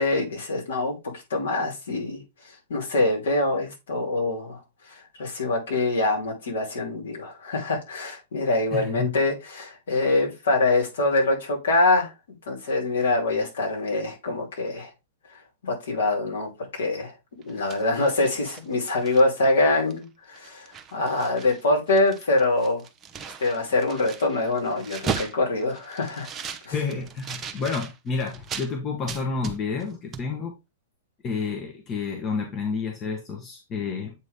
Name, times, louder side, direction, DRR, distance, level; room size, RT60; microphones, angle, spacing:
voice 1, 0.0-2.2 2.7-4.6 4.9-12.1 12.5-14.9 15.6-17.1 17.5-22.8 23.4-26.3 26.6-26.7, left 2 dB, 65° left, 3.2 m, -24 dB
voice 2, 8.7-9.1 26.7-30.5 31.2-34.1, left 5 dB, 30° left, 1.3 m, -30 dB
sound 1, 17.4-19.5 19.9-20.0 20.3-21.6 21.9-28.7 29.1-29.9 30.1-30.3, right 6 dB, 20° right, 0.9 m, -37 dB
8.0 x 3.9 x 3.6 m
figure-of-eight pair, 105°, 0 cm